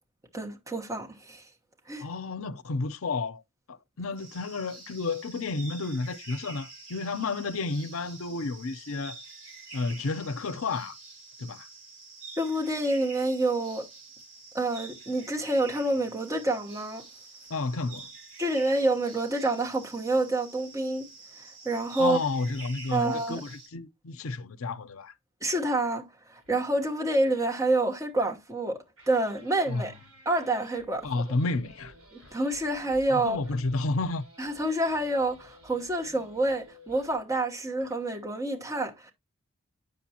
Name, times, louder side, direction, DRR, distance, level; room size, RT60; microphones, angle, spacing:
voice 1, 0.3-1.5 1.9-2.1 12.4-13.9 14.5-17.0 18.4-21.1 21.4-22.2 22.9-23.4 25.4-30.0 30.2-31.1 32.1-33.4 34.4-39.1, right 2 dB, 15° right, 1.2 m, -28 dB
voice 2, 2.0-3.4 3.7-9.2 9.7-11.0 11.4-11.7 17.5-18.1 22.0-25.1 29.7-29.9 31.0-31.9 33.1-34.2, left 3 dB, 70° left, 0.6 m, -31 dB
sound 1, 4.2-23.7, right 3 dB, 70° right, 3.4 m, -47 dB
sound 2, 26.3-26.6 28.2-28.6 29.0-37.3 37.7-38.1, equal, 85° right, 5.4 m, -54 dB
9.3 x 6.6 x 2.8 m
head